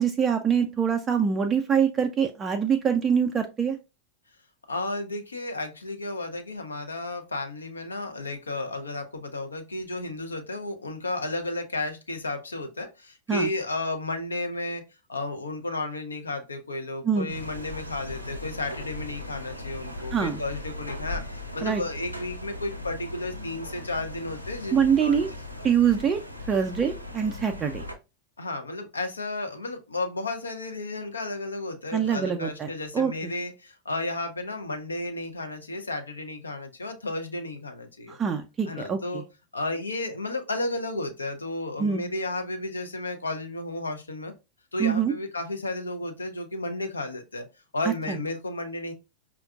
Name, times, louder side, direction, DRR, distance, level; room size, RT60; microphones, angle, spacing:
voice 1, 0.0-3.8 13.3-13.5 17.0-17.3 20.1-20.4 21.6-21.8 24.7-25.3 25.6-26.2 26.5-27.8 31.9-32.7 32.9-33.1 38.1-39.2 41.8-42.1 44.8-45.1 48.1-48.2, right 7 dB, 20° right, 0.4 m, -24 dB
voice 2, 4.7-14.8 15.1-25.2 28.4-38.2 38.7-39.2 39.5-44.3 44.7-47.5 47.7-48.9, left 2 dB, 75° left, 0.6 m, -33 dB
sound 1, 17.3-28.0, left 2 dB, 90° right, 0.5 m, -38 dB
5.0 x 2.3 x 2.3 m
figure-of-eight pair, 90°, 0 cm